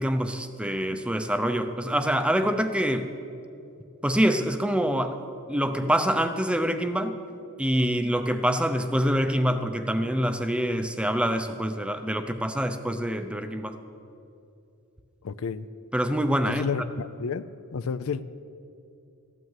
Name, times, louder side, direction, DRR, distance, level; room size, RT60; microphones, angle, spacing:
voice 1, 0.0-3.1 4.0-5.2 5.5-7.2 7.6-13.8 15.9-16.6, equal, 5° right, 8 dB, 0.6 m, -25 dB
voice 2, 15.2-15.7 16.5-18.2, left 5 dB, 70° left, 14 dB, 0.4 m, -31 dB
14.5 x 9.3 x 7.4 m, 2.6 s
head